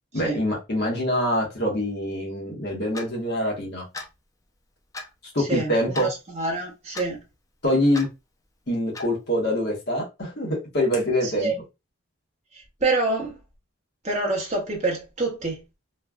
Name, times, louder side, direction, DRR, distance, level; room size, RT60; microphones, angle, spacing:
voice 1, 0.1-3.9 5.3-6.1 7.6-8.1 8.7-11.5, left 1 dB, 50° left, 1.1 m, -25 dB
Clock, 2.9-3.1 3.9-4.1 4.9-5.1 5.9-6.1 6.9-7.1 7.9-8.1 8.9-9.1, left 3 dB, 15° left, 0.4 m, -36 dB
voice 2, 5.4-7.2 11.2-11.6 12.8-13.3 14.0-15.6, right 3 dB, 35° right, 1.0 m, -26 dB
3.1 x 2.2 x 2.3 m
head